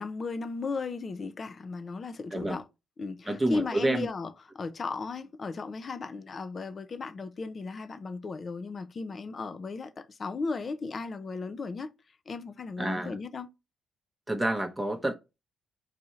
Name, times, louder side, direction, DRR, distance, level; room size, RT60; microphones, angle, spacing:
voice 1, 0.0-2.6 3.0-11.9 12.3-13.5, left 4 dB, 40° left, 0.6 m, -36 dB
voice 2, 3.3-4.1 12.8-13.2 14.3-15.1, right 1 dB, 10° right, 0.9 m, -28 dB
4.1 x 2.6 x 4.4 m
cardioid pair, 90°, 0 cm